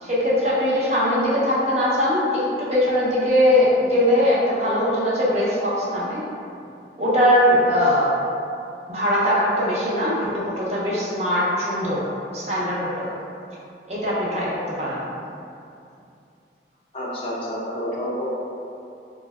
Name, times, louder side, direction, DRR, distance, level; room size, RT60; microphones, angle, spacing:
voice 1, 0.0-6.2 7.0-8.1 8.9-12.0 12.3-13.1 13.9-14.5 14.8-15.0, equal, 35° right, -7 dB, 0.6 m, -21 dB
voice 2, 16.9-18.2, equal, 30° left, -6 dB, 0.5 m, -29 dB
3.1 x 2.6 x 2.3 m, 2.6 s
head